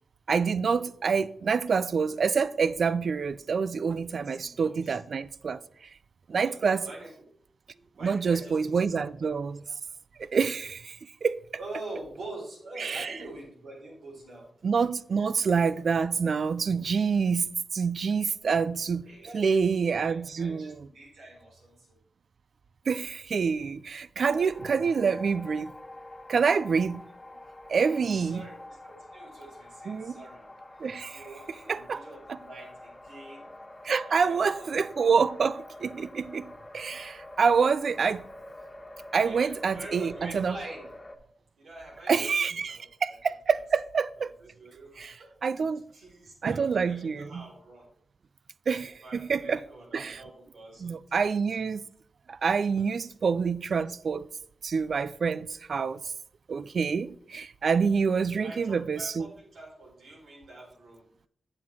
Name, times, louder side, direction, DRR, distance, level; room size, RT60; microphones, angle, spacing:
voice 1, 0.3-5.6 6.3-6.9 8.0-9.6 10.2-11.0 11.2-11.4 12.8-13.1 14.6-19.0 19.3-20.8 22.9-25.7 26.3-27.0 27.7-28.4 29.9-30.1 30.8-31.2 31.7-32.0 33.8-38.3 39.1-40.5 42.1-44.3 45.0-45.1 45.4-45.8 46.4-47.4 48.7-49.6 49.9-50.2 50.8-51.8 52.3-54.3 54.6-56.0 56.5-59.3, right 5 dB, 65° right, 0.4 m, -27 dB
voice 2, 4.0-5.0 6.3-7.3 7.7-8.8 9.2-9.3 11.6-14.5 15.2-15.3 19.0-19.8 20.0-22.0 28.1-30.8 31.1-33.5 34.1-34.9 39.1-40.9 41.6-42.3 42.7-42.9 43.5-43.6 44.1-45.3 45.9-47.9 49.0-51.6 52.7-53.2 58.1-61.0, right 2 dB, 85° right, 4.0 m, -46 dB
sound 1, 24.2-41.2, left 1 dB, 25° left, 1.4 m, -46 dB
7.8 x 7.4 x 4.6 m
cardioid pair, 60°, 0 cm